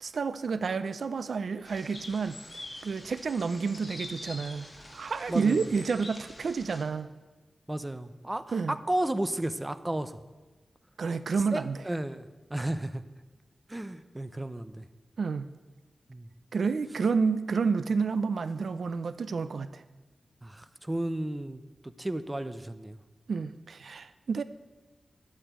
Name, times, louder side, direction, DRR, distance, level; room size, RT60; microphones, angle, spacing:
voice 1, 0.0-2.4 2.8-7.1 8.5-8.7 11.0-11.8 15.2-15.5 16.5-19.8 23.3-24.4, right 5 dB, 75° right, 13 dB, 0.6 m, -30 dB
sound 1, 1.6-6.8, left 1 dB, 25° left, 2.0 m, -45 dB
voice 2, 5.3-5.7 7.7-10.2 11.5-12.2 12.5-13.0 13.7-14.8 16.1-16.3 20.4-23.0, right 1 dB, 15° right, 11 dB, 0.6 m, -33 dB
12.0 x 8.9 x 8.1 m, 1.2 s
wide cardioid pair, 125°, 0 cm